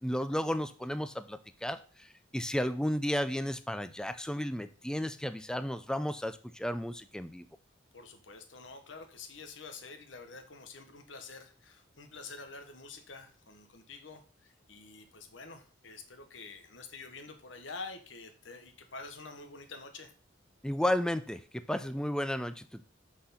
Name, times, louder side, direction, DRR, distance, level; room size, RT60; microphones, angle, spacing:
voice 1, 0.0-7.5 20.6-22.9, left 1 dB, 5° left, 11 dB, 0.4 m, -33 dB
voice 2, 7.9-20.1, left 4 dB, 75° left, 6 dB, 1.1 m, -47 dB
6.4 x 5.9 x 5.6 m, 0.41 s
head